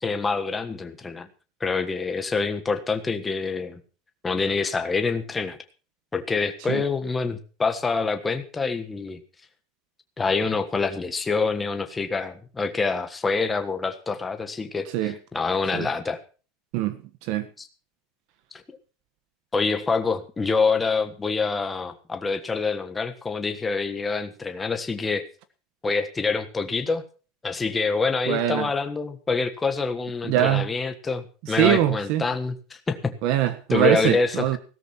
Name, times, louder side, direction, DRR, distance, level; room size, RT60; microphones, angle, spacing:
voice 1, 0.0-1.3 1.6-3.8 4.2-5.6 6.1-9.2 10.2-16.2 17.6-17.7 18.7-18.8 19.5-25.2 25.8-27.0 27.4-33.2 33.7-34.6, left 4 dB, 10° left, 1.4 m, -26 dB
voice 2, 16.7-17.5 28.3-28.7 30.2-30.7 31.4-32.2 33.2-34.6, right 12 dB, 50° right, 1.4 m, -23 dB
17.0 x 13.0 x 4.5 m
supercardioid pair, 175°, 0 cm